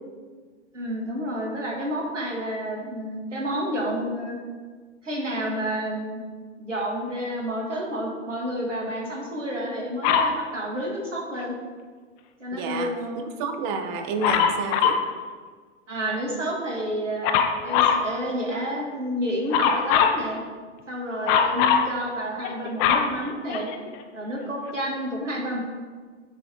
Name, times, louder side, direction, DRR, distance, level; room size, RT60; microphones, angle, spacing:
voice 1, 0.7-4.4 5.0-6.2 6.6-11.6 12.4-13.2 15.9-20.4 20.9-23.7 24.1-25.6, equal, 85° right, -1 dB, 1.8 m, -30 dB
Dog, 10.0-10.4 14.2-15.1 17.2-18.1 19.5-20.2 21.3-21.9 22.4-24.0 24.7-24.8, left 7 dB, 35° left, 0.6 m, -21 dB
voice 2, 12.5-15.0, right 4 dB, 40° right, 7 dB, 0.9 m, -30 dB
9.8 x 3.4 x 4.3 m, 1.5 s
figure-of-eight pair, 105°, 36 cm